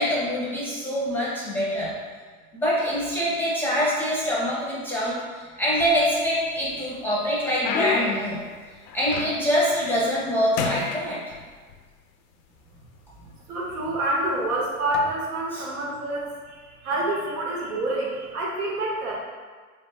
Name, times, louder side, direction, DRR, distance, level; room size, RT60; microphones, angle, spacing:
voice 1, 0.0-1.9 2.5-8.4 8.9-11.2 15.5-15.6, equal, 5° left, -7 dB, 0.6 m, -25 dB
sound 1, 5.7-6.4 6.9-9.7 10.0-10.3 10.6-11.8 12.6-12.7 13.4-13.6 14.8-15.0, left 6 dB, 50° left, 0.5 m, -32 dB
voice 2, 13.5-19.1, right 1 dB, 80° right, -4 dB, 1.2 m, -27 dB
3.6 x 3.5 x 2.2 m, 1.5 s
hypercardioid pair, 110°, 44 cm